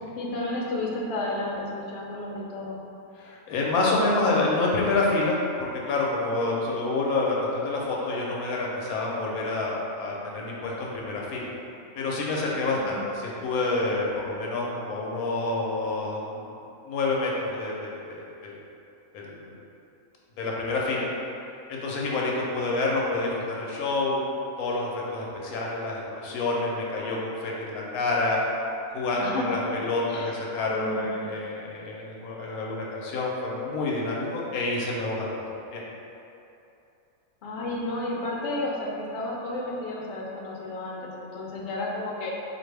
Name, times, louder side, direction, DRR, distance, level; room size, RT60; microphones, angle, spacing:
voice 1, 0.2-2.8 12.7-13.0 29.2-29.6 30.1-30.3 30.7-31.1 37.4-42.3, left 2 dB, 60° left, -3 dB, 0.9 m, -32 dB
voice 2, 3.2-11.5 11.9-16.4 16.9-18.6 19.1-19.5 20.4-21.1 21.7-24.2 24.6-28.4 28.9-35.4 35.7-35.8, left 2 dB, 80° left, -3 dB, 1.1 m, -28 dB
4.2 x 2.6 x 3.3 m, 2.7 s
omnidirectional pair, 1.5 m